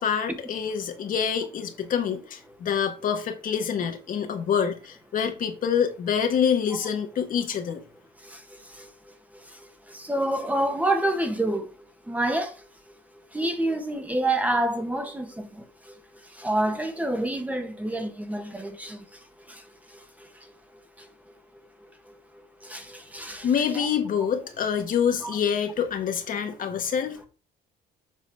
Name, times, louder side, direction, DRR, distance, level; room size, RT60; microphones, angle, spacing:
voice 1, 0.0-7.8 23.4-27.3, left 7 dB, 55° left, 1.5 m, -26 dB
voice 2, 8.2-8.9 9.5-11.7 12.1-12.7 13.3-16.0 16.3-19.0 19.5-19.6 19.9-20.5 21.0-21.1 22.6-23.9 25.2-25.3, right 1 dB, 10° right, 1.3 m, -28 dB
7.5 x 4.0 x 5.0 m
cardioid pair, 110°, 17 cm